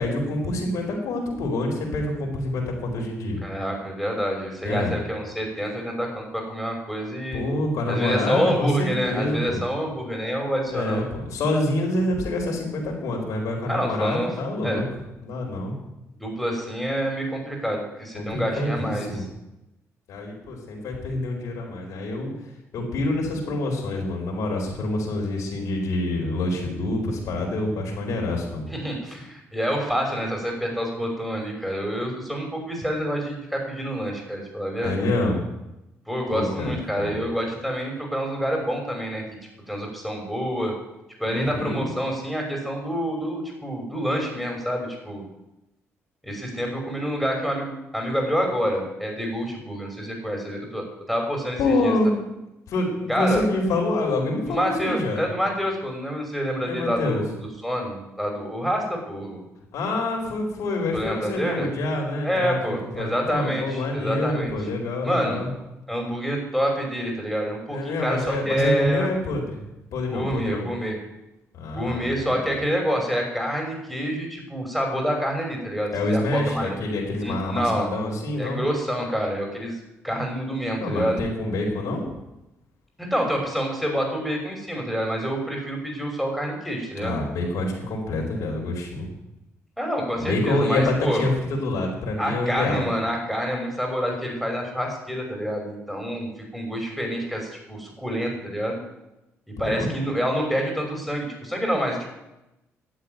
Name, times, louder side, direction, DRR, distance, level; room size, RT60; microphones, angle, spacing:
voice 1, 0.0-3.4 4.6-4.9 7.3-9.6 10.7-14.8 15.2-15.8 18.1-19.2 20.1-22.3 22.7-28.6 34.8-35.4 36.3-37.2 41.3-41.9 51.6-52.1 52.7-55.2 56.7-57.2 59.7-65.5 67.7-69.6 69.9-70.6 71.5-72.6 75.9-78.6 80.8-82.0 87.0-89.1 90.2-92.9 99.6-99.9, left 2 dB, 80° left, -1 dB, 4.5 m, -26 dB
voice 2, 3.4-7.4 7.9-11.0 13.7-14.3 14.6-14.8 16.2-19.3 28.7-35.1 36.1-39.2 39.7-40.7 41.2-45.2 46.2-51.9 53.1-53.4 54.5-57.3 57.6-59.4 60.9-61.7 62.2-64.5 65.0-65.4 65.9-69.1 70.1-71.0 71.7-76.8 77.2-77.9 78.4-79.8 80.0-81.2 83.0-87.1 89.8-91.2 92.2-98.8 99.6-102.1, equal, ahead, 0 dB, 5.9 m, -27 dB
11.5 x 8.2 x 9.4 m, 0.93 s
cardioid pair, 80°, 5 cm